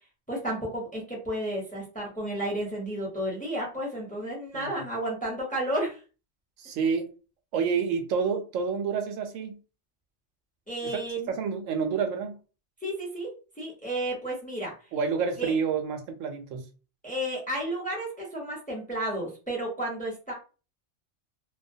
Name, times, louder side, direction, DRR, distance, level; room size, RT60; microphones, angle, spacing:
voice 1, 0.3-6.0 10.7-11.3 12.8-13.3 13.6-14.7 15.4-15.5 17.0-20.3, right 1 dB, 10° left, 0.6 m, -32 dB
voice 2, 6.6-7.1 7.5-9.6 10.8-11.0 11.3-12.4 14.9-16.7, right 6 dB, 80° right, 0.9 m, -28 dB
2.3 x 2.2 x 2.6 m
omnidirectional pair, 1.3 m